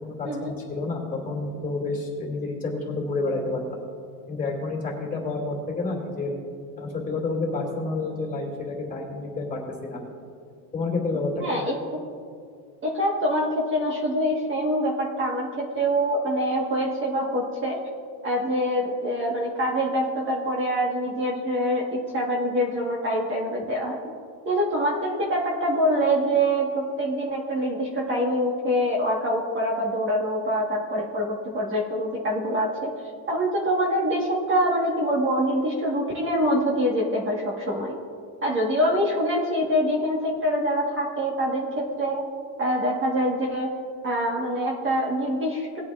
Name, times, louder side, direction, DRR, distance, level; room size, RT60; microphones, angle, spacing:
voice 1, 0.0-3.6 4.3-6.4 6.8-10.2 10.7-11.5, left 3 dB, 20° left, -1 dB, 2.5 m, -29 dB
voice 2, 11.4-11.8 12.8-17.8 18.2-24.0 24.4-32.9 33.3-38.0 38.4-42.2 42.6-43.7 44.0-45.8, equal, 25° right, -2 dB, 1.4 m, -25 dB
19.5 x 8.5 x 2.4 m, 2.2 s
cardioid pair, 140°, 44 cm